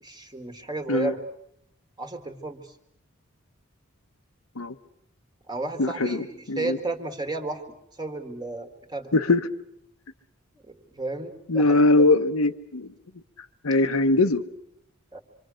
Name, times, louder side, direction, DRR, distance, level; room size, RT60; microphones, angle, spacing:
voice 1, 0.0-1.2 2.0-2.7 5.5-7.6 7.9-9.1 10.7-11.8 15.1-15.2, right 2 dB, 20° right, 1.7 m, -33 dB
voice 2, 5.8-6.8 9.1-9.5 11.5-12.9 13.6-14.4, left 2 dB, 85° left, 1.0 m, -21 dB
26.5 x 24.5 x 6.4 m
head